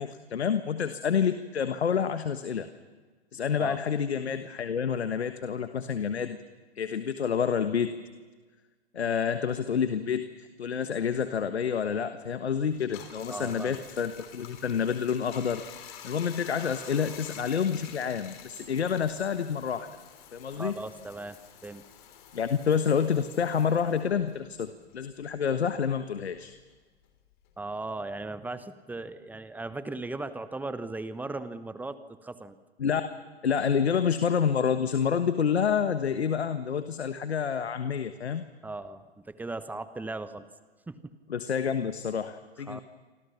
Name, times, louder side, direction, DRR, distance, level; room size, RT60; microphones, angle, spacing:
voice 1, 0.0-2.7 3.3-6.4 6.8-8.0 8.9-15.6 16.0-19.9 20.3-20.7 22.3-26.5 32.8-33.0 33.4-38.4 41.3-42.8, left 7 dB, 75° left, 10 dB, 1.4 m, -28 dB
Bathtub (filling or washing), 12.7-25.6 25.9-27.7, left 9 dB, 45° left, 3.8 m, -49 dB
voice 2, 13.3-13.8 20.6-21.4 21.6-21.8 27.6-32.6 38.6-40.4 40.9-41.1 42.6-42.8, right 2 dB, 5° right, 13 dB, 1.0 m, -37 dB
29.0 x 25.0 x 5.8 m, 1.4 s
figure-of-eight pair, 115°, 33 cm